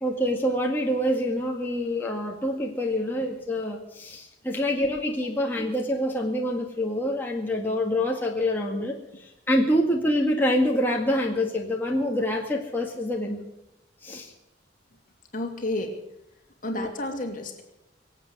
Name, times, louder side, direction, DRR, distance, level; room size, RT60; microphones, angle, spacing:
voice 1, 0.0-13.5 14.0-14.3 16.8-16.9, left 1 dB, 10° left, -1 dB, 1.9 m, -26 dB
voice 2, 15.3-16.0 16.6-17.6, left 1 dB, 45° left, 3 dB, 2.6 m, -31 dB
24.5 x 8.4 x 6.7 m, 0.91 s
head